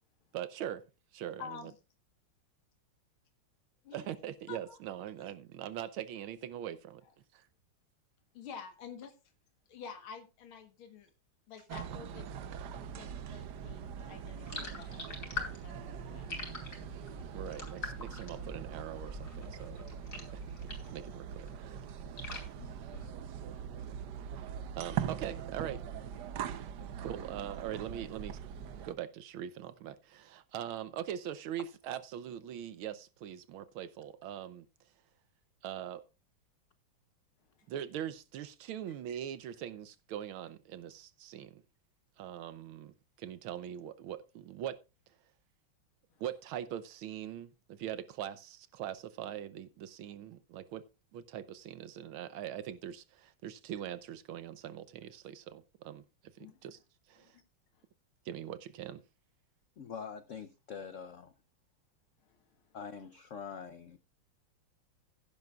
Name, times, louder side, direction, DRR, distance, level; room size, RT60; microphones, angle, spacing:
voice 1, 0.3-0.8 1.1-1.6 3.9-7.0 7.3-7.5 17.3-19.8 20.3-20.5 20.9-21.9 24.8-25.8 27.0-28.4 28.8-34.7 35.6-36.0 37.7-41.6 42.2-44.8 46.2-50.8 51.1-56.0 56.4-56.8 57.1-57.4 58.2-59.0, right 10 dB, 80° right, 1.6 m, -42 dB
voice 2, 1.4-1.7 3.8-4.1 4.5-4.8 5.2-5.3 8.3-9.1 9.7-11.1 11.5-12.3 12.9-16.3 19.3-19.4 22.2-22.8 46.1-46.2 56.4-56.6 57.2-57.3 62.3-62.4, left 6 dB, 85° left, 2.2 m, -49 dB
sound 1, 11.7-28.9, right 8 dB, 65° right, 1.2 m, -42 dB
sound 2, 14.5-21.0 21.4-23.4, left 4 dB, 40° left, 4.0 m, -44 dB
voice 3, 59.8-61.3 62.7-64.0, left 6 dB, 65° left, 0.7 m, -44 dB
16.0 x 10.5 x 2.4 m
omnidirectional pair, 2.2 m